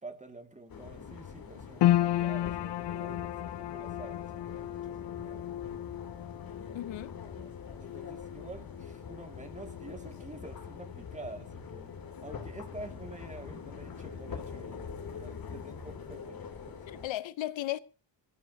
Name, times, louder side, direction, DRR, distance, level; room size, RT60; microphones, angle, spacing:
voice 1, 0.0-5.5 7.8-14.9 15.1-17.1, right 2 dB, 15° right, 2.1 m, -48 dB
sound 1, 0.7-17.1, left 6 dB, 50° left, 3.1 m, -44 dB
sound 2, 1.8-14.2 14.5-15.4 15.9-16.0, left 13 dB, 65° left, 0.6 m, -35 dB
voice 2, 6.7-7.2 16.9-17.8, left 14 dB, 90° left, 0.9 m, -35 dB
24.5 x 14.0 x 2.8 m
wide cardioid pair, 155°, 44 cm